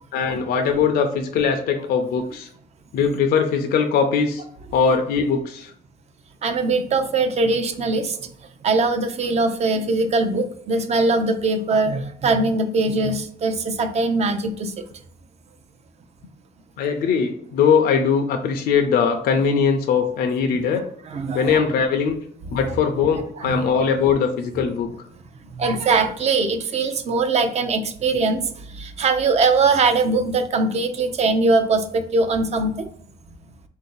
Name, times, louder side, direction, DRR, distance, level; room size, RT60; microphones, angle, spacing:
voice 1, 0.1-2.5 2.9-4.4 4.7-5.7 16.8-20.8 21.3-22.2 22.5-24.9, left 6 dB, 65° left, 5 dB, 0.5 m, -20 dB
voice 2, 6.4-8.3 8.6-14.8 21.1-21.6 23.4-23.6 25.5-32.9, right 3 dB, 40° right, 8 dB, 0.5 m, -21 dB
3.8 x 2.7 x 3.7 m, 0.64 s
cardioid pair, 110°, 17 cm